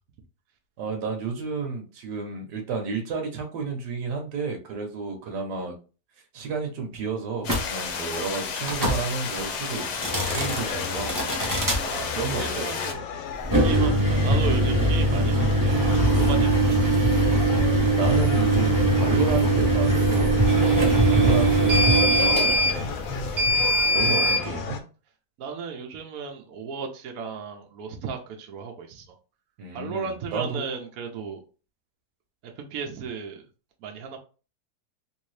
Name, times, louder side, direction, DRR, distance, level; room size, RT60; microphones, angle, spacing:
voice 1, 0.8-5.7 6.3-11.3 12.1-12.7 17.9-20.4 21.1-22.9 23.9-24.8 29.6-30.6, right 5 dB, 80° right, 4 dB, 1.4 m, -31 dB
sound 1, 7.4-12.9, left 5 dB, 85° left, 1.2 m, -32 dB
sound 2, 7.4-7.7 8.6-9.0 9.9-10.6 11.1-11.8 13.4-24.4, right 1 dB, 20° right, 0.5 m, -21 dB
sound 3, 10.1-24.8, left 7 dB, 70° left, 0.9 m, -35 dB
voice 2, 11.8-13.1 13.6-16.8 24.1-24.3 25.4-29.0 29.7-31.4 32.6-33.4 33.8-34.2, right 5 dB, 65° right, 3 dB, 1.0 m, -35 dB
3.5 x 2.7 x 3.1 m, 0.35 s
omnidirectional pair, 1.8 m